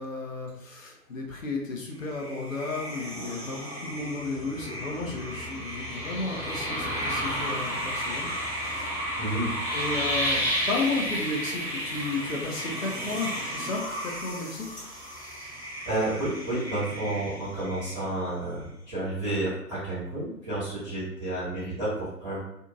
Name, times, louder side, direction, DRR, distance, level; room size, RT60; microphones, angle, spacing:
voice 1, 0.0-8.3 8.6-9.0 9.7-14.7, left 3 dB, 55° left, -1 dB, 0.8 m, -33 dB
sound 1, 2.0-18.3, equal, 30° left, 1.3 m, -33 dB
voice 2, 9.2-9.5 14.8-14.9 15.8-22.4, right 1 dB, 10° right, -15 dB, 1.3 m, -31 dB
2.7 x 2.6 x 2.4 m, 0.78 s
figure-of-eight pair, 135°, 48 cm